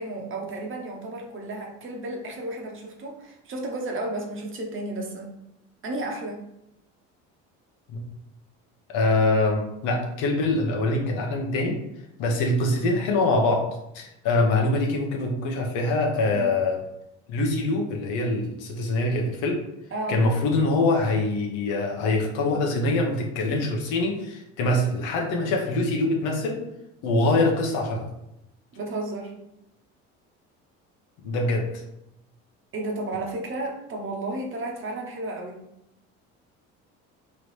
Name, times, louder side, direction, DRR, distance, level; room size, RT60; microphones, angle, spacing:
voice 1, 0.0-5.3 5.8-6.4 16.3-16.5 19.9-20.2 28.7-29.3 32.7-35.6, right 2 dB, 40° right, 1 dB, 1.1 m, -33 dB
voice 2, 8.9-11.8 12.2-13.7 13.9-16.8 17.3-19.6 20.1-26.6 27.0-28.1 31.2-31.8, left 2 dB, 70° left, 1 dB, 1.1 m, -24 dB
3.9 x 3.4 x 3.2 m, 0.83 s
supercardioid pair, 95°, 32 cm